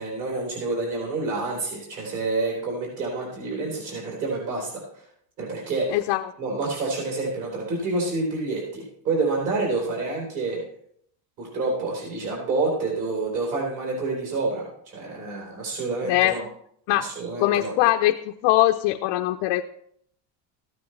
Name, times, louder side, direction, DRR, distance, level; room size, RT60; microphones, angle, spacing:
voice 1, 0.0-4.8 5.4-6.0 6.4-10.6 11.4-16.5 16.9-17.7, right 3 dB, 40° right, -2 dB, 4.1 m, -28 dB
voice 2, 5.9-6.2 16.0-16.4 16.9-17.1 17.4-19.6, left 15 dB, 65° left, 5 dB, 0.7 m, -21 dB
14.5 x 9.5 x 3.3 m, 0.67 s
cardioid pair, 155°, 48 cm